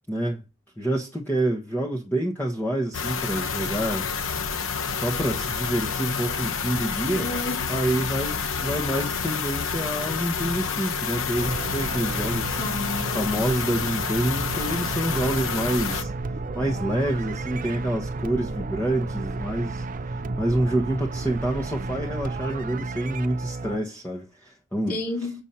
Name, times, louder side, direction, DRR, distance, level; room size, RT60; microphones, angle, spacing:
voice 1, 0.1-0.4 0.8-4.1 5.0-7.3 7.7-12.6 13.1-16.1 16.5-25.0, right 1 dB, 10° left, 1.1 m, -27 dB
sound 1, 2.9-16.0, left 6 dB, 65° left, 1.0 m, -29 dB
voice 2, 7.1-7.7 12.6-13.7 24.9-25.4, left 2 dB, 45° left, 2.9 m, -32 dB
sound 2, 11.4-23.8, right 3 dB, 40° right, 0.6 m, -32 dB
7.2 x 7.1 x 4.3 m
head